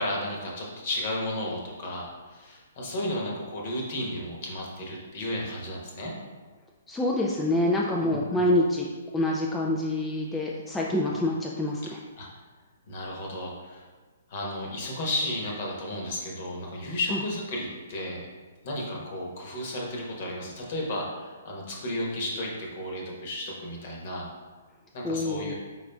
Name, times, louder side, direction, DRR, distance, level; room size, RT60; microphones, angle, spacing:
voice 1, 0.0-6.1 8.0-8.4 12.2-12.3 12.9-13.8 14.3-18.2 18.6-24.3 24.9-25.5, left 1 dB, 45° left, -2 dB, 1.1 m, -33 dB
voice 2, 6.9-8.9 9.1-12.0 17.1-17.2 25.0-25.5, left 1 dB, 10° left, -3 dB, 0.4 m, -26 dB
4.7 x 4.0 x 2.3 m, 1.4 s
figure-of-eight pair, 125°, 0 cm